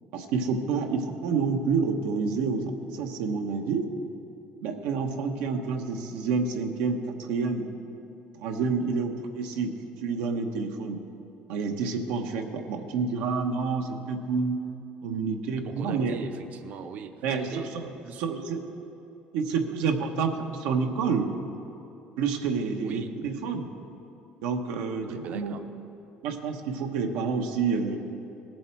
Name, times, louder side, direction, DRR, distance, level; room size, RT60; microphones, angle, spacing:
voice 1, 0.1-3.9 4.6-7.7 8.4-9.7 10.0-11.0 11.5-14.6 15.0-16.1 17.2-17.9 18.2-18.6 19.3-21.3 22.2-23.7 24.4-25.5 26.2-28.0, right 5 dB, 85° right, 4 dB, 1.1 m, -28 dB
voice 2, 15.6-17.7 18.0-18.3 22.8-23.1 25.1-25.6, right 6 dB, 50° right, 8 dB, 0.7 m, -40 dB
18.0 x 7.7 x 4.5 m, 2.9 s
cardioid pair, 135°, 3 cm